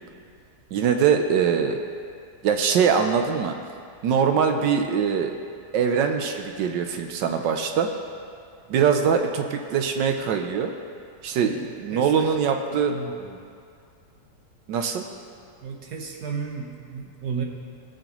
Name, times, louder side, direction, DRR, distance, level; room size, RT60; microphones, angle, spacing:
voice 1, 0.7-1.8 2.4-3.6 4.0-5.3 5.7-7.9 8.7-10.7 11.2-13.0 14.7-15.0, right 7 dB, 85° right, 5 dB, 1.4 m, -22 dB
voice 2, 11.3-13.4 15.6-17.4, right 6 dB, 65° right, 1 dB, 1.6 m, -35 dB
19.0 x 8.0 x 3.0 m, 2.3 s
omnidirectional pair, 1.9 m